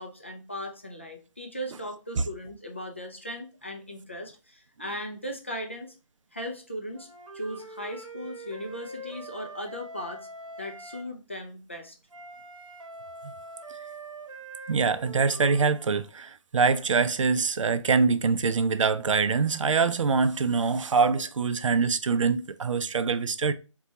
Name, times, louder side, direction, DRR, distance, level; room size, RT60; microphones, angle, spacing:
voice 1, 0.0-5.9 6.3-7.1 7.3-10.3 10.6-12.0, equal, 25° left, 0.3 m, -38 dB
Wind instrument woodwind instrument, 6.9-11.1 12.1-16.0, right 2 dB, 90° right, 0.9 m, -43 dB
voice 2, 14.7-23.5, right 5 dB, 70° right, 0.4 m, -24 dB
4.1 x 2.2 x 2.8 m
figure-of-eight pair, 170°, 17 cm